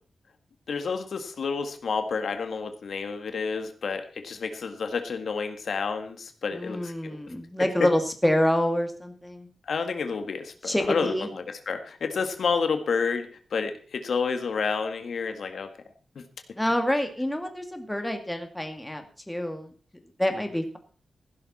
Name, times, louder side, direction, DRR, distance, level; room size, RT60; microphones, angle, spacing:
voice 1, 0.7-7.2 9.7-15.7 16.2-16.3, left 5 dB, 70° left, 7 dB, 1.8 m, -30 dB
voice 2, 6.5-9.5 10.6-11.3 16.6-19.7 20.2-20.8, left 1 dB, 5° left, 5 dB, 2.1 m, -27 dB
16.0 x 11.5 x 4.3 m, 0.39 s
wide cardioid pair, 135°, 0 cm